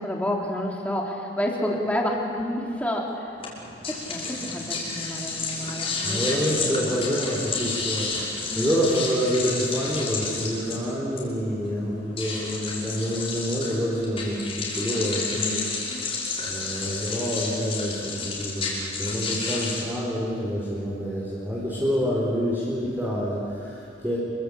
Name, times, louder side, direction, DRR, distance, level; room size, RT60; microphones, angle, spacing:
voice 1, 0.0-3.3 3.9-6.3 6.8-7.0 8.5-8.7 15.1-15.6, equal, 5° left, -1 dB, 3.5 m, -29 dB
sound 1, 3.4-19.8, left 4 dB, 30° left, 5.7 m, -31 dB
voice 2, 6.0-14.4 14.7-15.6 16.0-16.1 16.5-24.2, equal, 10° right, -7 dB, 4.8 m, -27 dB
28.5 x 23.0 x 8.5 m, 2.4 s
head